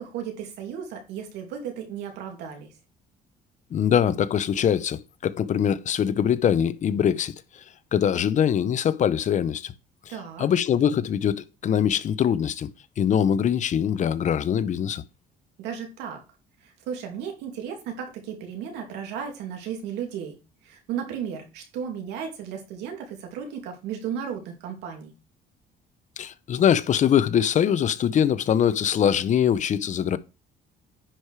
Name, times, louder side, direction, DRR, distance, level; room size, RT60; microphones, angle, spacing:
voice 1, 0.0-2.7 10.1-10.5 15.6-16.2 16.6-20.3 20.6-25.1, right 8 dB, 90° right, 2.8 m, -34 dB
voice 2, 3.7-7.3 7.9-9.7 10.4-12.7 13.0-15.0 26.2-30.2, left 9 dB, 45° left, 0.7 m, -23 dB
10.0 x 4.9 x 4.8 m
cardioid pair, 110°, 17 cm